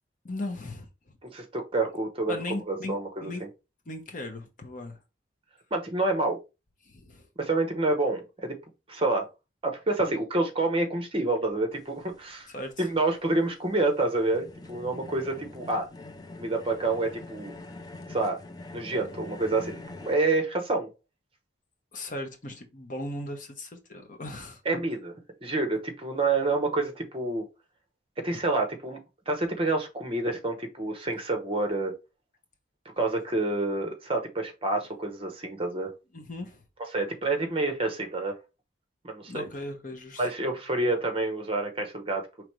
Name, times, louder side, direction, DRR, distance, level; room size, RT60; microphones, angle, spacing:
voice 1, 0.2-0.9 2.3-2.9 3.2-3.5 3.9-5.0 6.8-7.3 12.5-12.9 21.9-24.6 36.1-36.6 39.3-40.3, left 1 dB, 45° left, 0.9 m, -37 dB
voice 2, 1.2-2.3 2.7-3.3 5.7-6.4 7.4-8.5 8.9-9.3 9.6-12.5 12.8-15.9 16.4-17.5 18.1-18.4 18.7-20.9 24.6-25.1 25.4-27.5 28.2-29.0 29.3-31.9 33.0-35.9 36.9-38.3 39.0-39.5 40.2-42.3, right 2 dB, 30° right, 0.9 m, -28 dB
sound 1, 11.7-20.2, left 2 dB, 20° left, 0.4 m, -45 dB
5.0 x 3.2 x 3.1 m
head